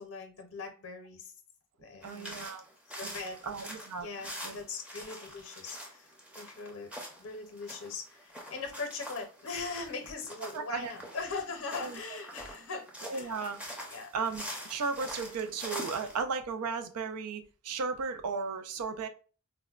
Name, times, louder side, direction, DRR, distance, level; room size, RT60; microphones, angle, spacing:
voice 1, 0.0-1.3 1.8-2.4 3.0-3.7 4.0-6.9 7.2-13.4 13.9-14.1, left 4 dB, 65° left, 0.6 m, -40 dB
sound 1, 2.0-16.2, equal, 5° right, 0.5 m, -44 dB
voice 2, 2.0-2.6 3.0-3.1 3.4-4.1 4.4-4.6 10.5-10.9 11.8-12.0 13.1-13.6 14.1-14.4 14.7-19.1, right 5 dB, 85° right, 0.4 m, -35 dB
3.9 x 2.1 x 2.3 m
head